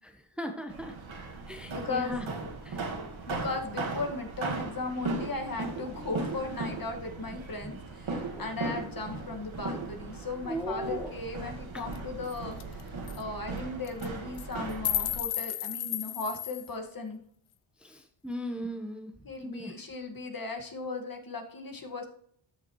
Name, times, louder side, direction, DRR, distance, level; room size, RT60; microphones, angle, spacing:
voice 1, 0.4-0.9 1.5-2.2 2.6-2.9 7.6-7.8 8.3-8.4 10.4-11.1 11.7-11.9 17.8-19.1 19.4-19.7, equal, ahead, 5 dB, 1.1 m, -37 dB
sound 1, 0.7-15.2, right 3 dB, 65° right, 2.0 m, -38 dB
voice 2, 1.7-2.3 3.3-12.6 13.2-17.2 19.2-22.1, left 3 dB, 40° left, 3 dB, 1.9 m, -37 dB
sound 2, 11.9-12.0 12.3-12.4 12.6-12.8 13.1-13.2 13.8-14.1 14.4-16.7, left 12 dB, 75° left, 0.7 m, -33 dB
13.5 x 6.8 x 3.1 m, 0.63 s
cardioid pair, 75°, 50 cm